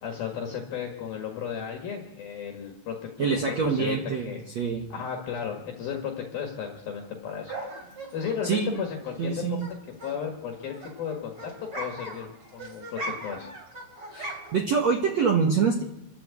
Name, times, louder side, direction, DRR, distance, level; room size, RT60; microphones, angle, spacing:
voice 1, 0.0-4.4 4.9-7.5 8.1-9.4 9.7-13.5, left 7 dB, 60° left, 3 dB, 3.0 m, -34 dB
voice 2, 3.2-4.9 8.4-8.8 9.2-9.7 14.1-15.8, right 5 dB, 85° right, 2 dB, 1.5 m, -25 dB
sound 1, 7.5-9.7 10.0-14.7, right 1 dB, 25° right, 3.7 m, -40 dB
27.5 x 12.0 x 8.4 m, 0.91 s
omnidirectional pair, 5.6 m